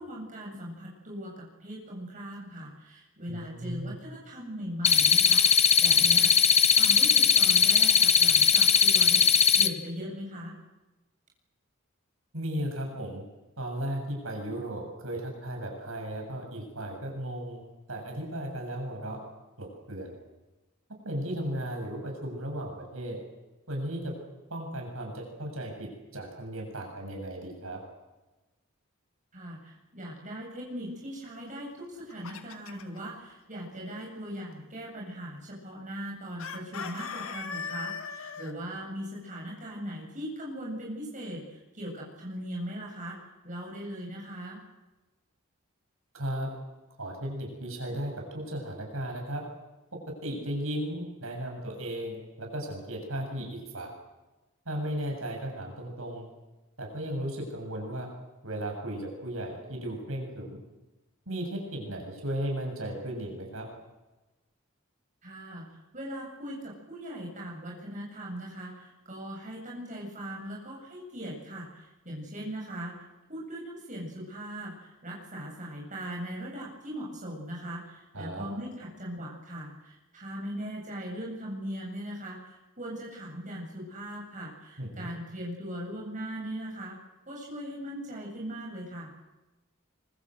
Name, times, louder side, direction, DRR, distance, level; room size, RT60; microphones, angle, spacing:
voice 1, 0.0-6.3 6.8-9.2 9.6-10.5 29.3-43.2 43.4-44.6 65.2-65.6 65.9-73.0 73.3-87.0 87.3-89.1, equal, 35° right, -3 dB, 7.9 m, -39 dB
voice 2, 3.3-3.9 12.3-13.2 13.6-17.6 17.9-19.2 19.6-20.2 21.0-23.2 23.7-24.1 24.5-27.8 46.1-46.5 47.0-49.4 49.9-53.9 54.7-56.3 56.8-58.1 58.4-60.6 61.3-63.7 78.1-78.5 84.8-85.1, right 1 dB, 75° right, 1 dB, 7.3 m, -35 dB
sound 1, 4.8-9.7, left 7 dB, 30° left, 1.1 m, -20 dB
Chicken rooster, 31.8-33.0 36.4-38.5, left 6 dB, 80° left, 1.9 m, -38 dB
25.0 x 23.5 x 8.0 m, 1.1 s
head